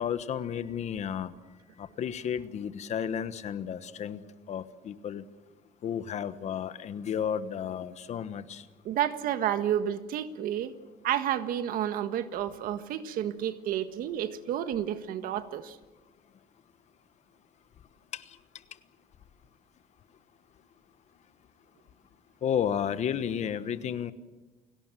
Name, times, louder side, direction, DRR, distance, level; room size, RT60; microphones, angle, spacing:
voice 1, 0.0-1.3 1.8-4.2 4.5-5.2 5.8-8.6 18.1-18.4 22.4-24.1, left 8 dB, 50° left, 13 dB, 1.2 m, -32 dB
voice 2, 8.8-10.7 11.0-15.8, right 10 dB, 70° right, 10 dB, 1.6 m, -30 dB
29.5 x 17.5 x 7.7 m, 1.2 s
cardioid pair, 130°, 15 cm